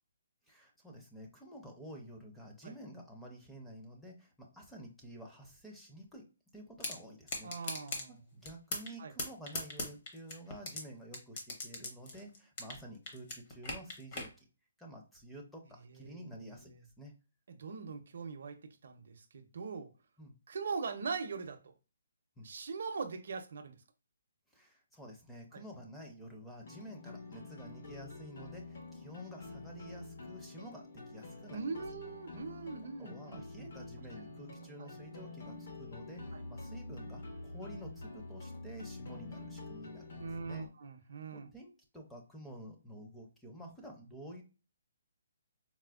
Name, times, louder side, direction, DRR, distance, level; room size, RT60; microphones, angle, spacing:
voice 1, 0.5-6.3 6.5-7.5 8.1-14.4 14.8-17.1 20.2-20.4 22.4-22.5 24.5-31.6 33.0-40.1 40.4-40.7 41.3-44.4, right 1 dB, 5° left, 0.5 m, -50 dB
sound 1, 6.8-7.0 7.3-8.0 8.4-8.9 9.2-10.8 11.1-12.8 13.1-14.3, left 2 dB, 35° left, 0.8 m, -38 dB
voice 2, 7.4-8.2 9.0-9.1 15.8-16.8 17.5-19.9 20.5-21.7 22.4-23.8 25.5-25.6 31.5-33.7 34.3-34.9 36.3-36.4 40.2-41.5, right 5 dB, 60° right, 0.5 m, -42 dB
sound 2, 26.6-40.7, left 2 dB, 60° left, 0.8 m, -47 dB
4.2 x 2.0 x 2.3 m
hypercardioid pair, 170°, 0 cm